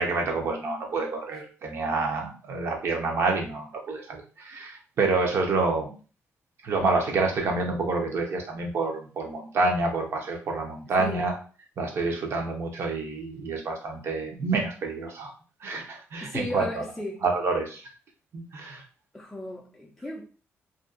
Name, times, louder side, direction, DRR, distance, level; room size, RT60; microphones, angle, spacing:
voice 1, 0.0-5.9 6.6-11.3 11.8-15.3 15.6-16.8 17.2-17.8 18.3-18.8, right 3 dB, 55° right, 0.7 m, -28 dB
voice 2, 11.0-11.3 16.2-17.2 19.1-20.2, left 1 dB, 5° left, 0.4 m, -35 dB
2.5 x 2.2 x 2.5 m
cardioid pair, 130°, 5 cm